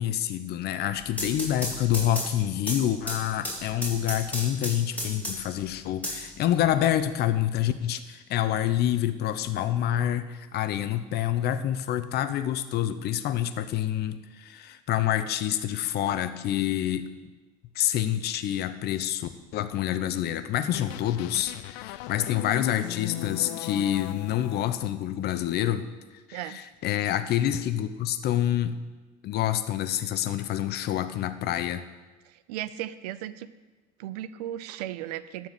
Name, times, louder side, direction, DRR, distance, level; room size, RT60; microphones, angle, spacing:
voice 1, 0.0-17.3 17.7-25.9 26.3-28.8 29.2-31.8, left 11 dB, 55° left, 11 dB, 0.8 m, -27 dB
sound 1, 0.9-5.6 6.0-7.0, left 1 dB, 5° left, 3.6 m, -34 dB
sound 2, 20.7-24.9, left 16 dB, 70° left, 0.4 m, -37 dB
voice 2, 32.2-33.5 34.0-35.5, right 12 dB, 80° right, 15 dB, 0.6 m, -36 dB
13.0 x 4.5 x 8.1 m, 1.2 s
hypercardioid pair, 80°, 20 cm